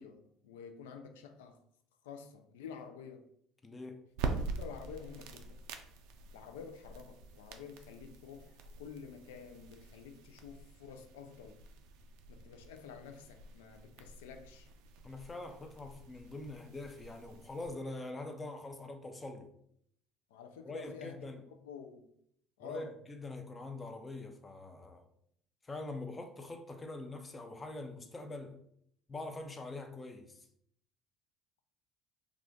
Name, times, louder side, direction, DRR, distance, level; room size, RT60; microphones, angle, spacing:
voice 1, 0.0-1.6 2.0-3.3 4.5-5.6 6.3-11.6 12.3-14.7 20.3-21.2 21.6-22.1 22.6-22.9, left 6 dB, 80° left, 0.3 m, -49 dB
voice 2, 3.6-4.0 15.0-19.5 20.6-21.4 22.6-25.1 25.6-28.6 29.1-30.5, left 2 dB, 25° left, 0.5 m, -44 dB
sound 1, 4.1-17.7, right 4 dB, 70° right, 0.3 m, -45 dB
2.4 x 2.3 x 3.6 m
hypercardioid pair, 70°, 0 cm